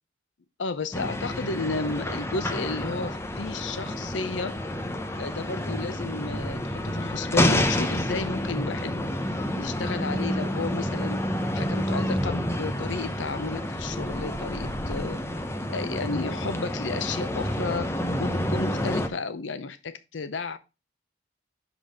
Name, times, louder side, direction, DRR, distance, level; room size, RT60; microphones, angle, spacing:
voice 1, 0.6-4.6 5.1-9.0 9.6-11.2 11.5-15.2 15.7-17.9 18.2-20.6, left 3 dB, 85° left, 12 dB, 0.7 m, -32 dB
sound 1, 0.9-19.1, left 1 dB, 15° left, 0.7 m, -29 dB
6.0 x 5.4 x 4.9 m, 0.28 s
head